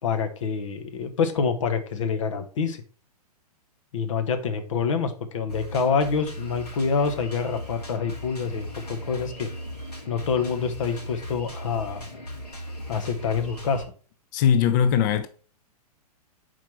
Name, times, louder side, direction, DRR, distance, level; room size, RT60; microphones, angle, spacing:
voice 1, 0.0-2.8 3.9-9.5 10.1-12.1 12.9-13.8, left 5 dB, 50° left, 1.2 m, -26 dB
Drum kit, 5.5-13.8, equal, 75° left, 2.8 m, -37 dB
voice 2, 14.3-15.3, left 8 dB, 30° left, 0.5 m, -20 dB
5.8 x 4.6 x 4.4 m
figure-of-eight pair, 110°, 20 cm